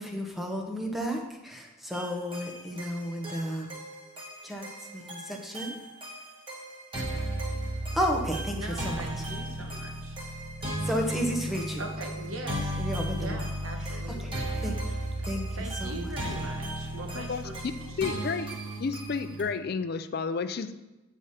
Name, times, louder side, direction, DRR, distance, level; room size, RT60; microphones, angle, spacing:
voice 1, 0.0-3.7 4.4-4.7 4.9-5.8 7.9-9.0 10.8-11.8 12.8-13.4 14.2-14.3 14.6-14.8 15.3-15.5 15.8-16.0, equal, ahead, 1 dB, 0.9 m, -32 dB
sound 1, 1.9-19.4, right 1 dB, 25° right, 1.6 m, -35 dB
voice 2, 8.5-10.2 11.8-12.8 13.1-14.4 15.5-18.2, right 1 dB, 90° right, 3 dB, 1.2 m, -41 dB
voice 3, 18.0-18.5 18.8-20.7, left 5 dB, 50° left, 11 dB, 0.4 m, -31 dB
9.1 x 4.9 x 4.2 m, 1.0 s
head